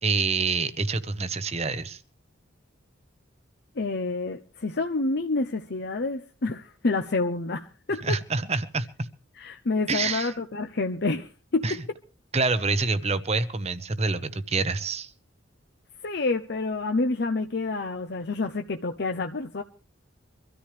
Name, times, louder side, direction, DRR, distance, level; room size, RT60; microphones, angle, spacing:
voice 1, 0.0-2.0 8.0-9.1 9.9-10.3 11.6-11.8 12.3-15.1, right 4 dB, 35° right, 13 dB, 0.9 m, -27 dB
voice 2, 3.8-8.2 9.4-11.8 16.0-19.6, left 3 dB, 55° left, 5 dB, 0.8 m, -28 dB
24.0 x 13.5 x 3.4 m, 0.35 s
head